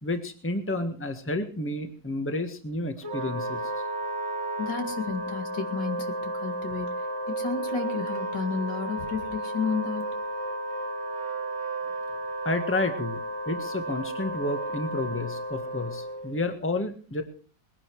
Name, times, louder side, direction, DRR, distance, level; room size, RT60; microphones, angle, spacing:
voice 1, 0.0-3.6 12.4-13.2 13.4-17.2, left 2 dB, 10° left, 7 dB, 1.4 m, -30 dB
Wind instrument woodwind instrument, 3.0-16.4, right 1 dB, 45° right, 2.4 m, -33 dB
voice 2, 4.6-6.9 7.4-10.0, left 5 dB, 80° left, 5 dB, 2.8 m, -32 dB
21.0 x 10.5 x 4.7 m, 0.40 s
omnidirectional pair, 1.9 m